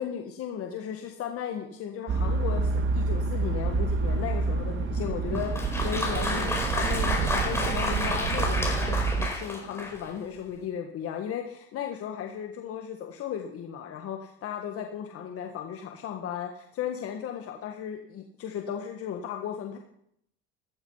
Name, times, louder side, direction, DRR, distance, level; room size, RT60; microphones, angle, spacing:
voice 1, 0.0-19.8, left 8 dB, 50° left, 4 dB, 1.7 m, -35 dB
sound 1, 2.1-9.3, right 4 dB, 40° right, 1.8 m, -28 dB
Applause, 5.3-10.2, left 2 dB, 10° left, 4.6 m, -30 dB
15.5 x 13.5 x 5.6 m, 0.74 s
supercardioid pair, 105°, 29 cm